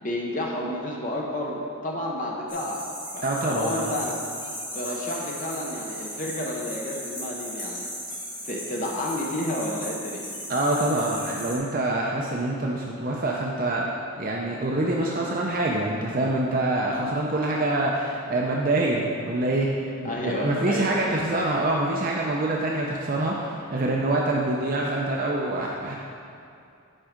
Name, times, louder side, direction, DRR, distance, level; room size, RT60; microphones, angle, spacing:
voice 1, 0.0-2.8 3.1-4.1 4.7-7.9 8.4-10.3 20.0-21.2, left 1 dB, 35° left, -2 dB, 0.8 m, -30 dB
sound 1, 2.5-11.6, equal, 20° left, 1.5 m, -36 dB
voice 2, 3.2-3.9 10.5-26.0, right 2 dB, 40° right, -2 dB, 0.6 m, -25 dB
8.8 x 4.7 x 5.1 m, 2.5 s
head